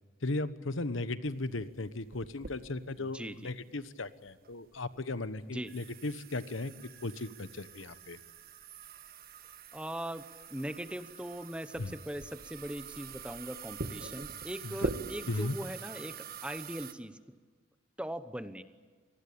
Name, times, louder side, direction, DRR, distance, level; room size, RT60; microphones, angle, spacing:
voice 1, 0.2-6.7 7.0-8.2 11.8-11.9 14.6-14.7 15.3-15.5, left 2 dB, 70° left, 14 dB, 1.2 m, -36 dB
sound 1, 1.2-16.9, right 3 dB, 45° right, 1.6 m, -44 dB
voice 2, 3.0-3.5 5.4-5.7 9.7-10.2 10.5-17.4 18.0-18.6, right 1 dB, 5° right, 11 dB, 1.0 m, -40 dB
27.5 x 19.5 x 8.8 m, 1.5 s
head